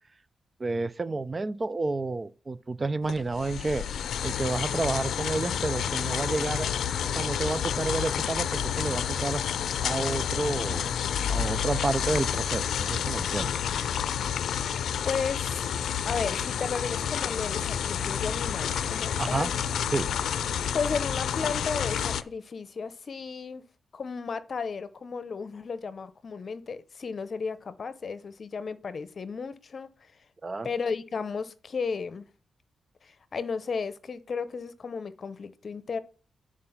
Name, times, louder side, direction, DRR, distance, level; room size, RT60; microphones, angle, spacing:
voice 1, 0.6-6.7 7.0-9.4 9.8-13.5 19.2-19.5 19.9-20.1 30.4-30.7, right 3 dB, 30° right, 0.4 m, -30 dB
sound 1, 3.1-22.2, left 8 dB, 90° left, 0.5 m, -29 dB
voice 2, 15.0-15.7 16.0-19.6 20.7-23.6 23.9-30.1 30.6-32.3 33.0-36.0, left 5 dB, 50° left, 0.8 m, -34 dB
9.7 x 4.9 x 5.7 m
cardioid pair, 100°, 0 cm